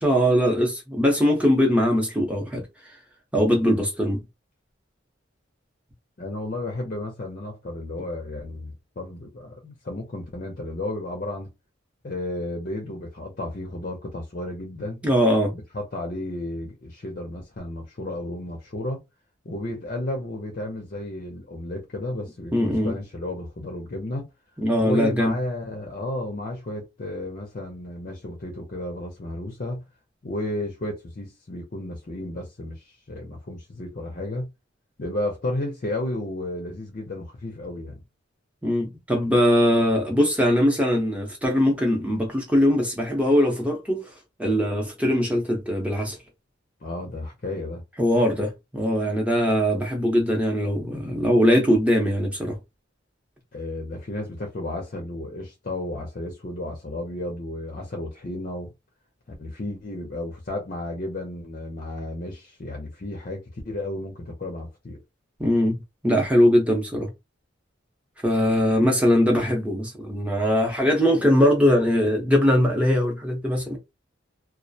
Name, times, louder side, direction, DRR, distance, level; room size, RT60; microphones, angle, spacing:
voice 1, 0.0-2.6 3.3-4.2 15.0-15.5 22.5-23.0 24.6-25.3 38.6-44.1 44.4-46.2 48.0-52.6 65.4-67.1 68.2-73.8, equal, 5° right, 0.7 m, -21 dB
voice 2, 6.2-11.5 12.0-15.0 15.5-19.0 19.4-24.3 24.8-29.8 30.2-34.5 35.0-38.0 46.8-47.8 53.5-58.7 59.4-65.0, left 1 dB, 45° left, 0.6 m, -33 dB
2.3 x 2.1 x 2.6 m
head